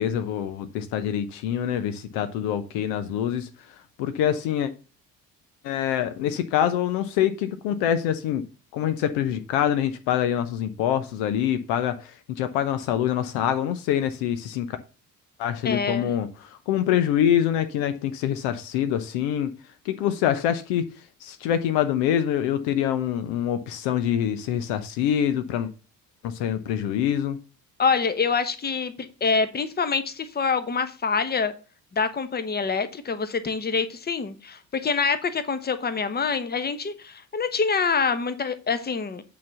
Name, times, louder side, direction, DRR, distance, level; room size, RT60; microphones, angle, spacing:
voice 1, 0.0-3.5 4.0-4.7 5.6-8.4 8.7-14.8 15.4-19.5 19.8-20.9 21.2-25.7 26.2-27.4, left 10 dB, 55° left, 0.8 m, -25 dB
voice 2, 15.6-16.1 27.8-31.5 31.9-39.2, left 5 dB, 20° left, 1.0 m, -26 dB
8.6 x 4.0 x 6.8 m
figure-of-eight pair, 50°, 48 cm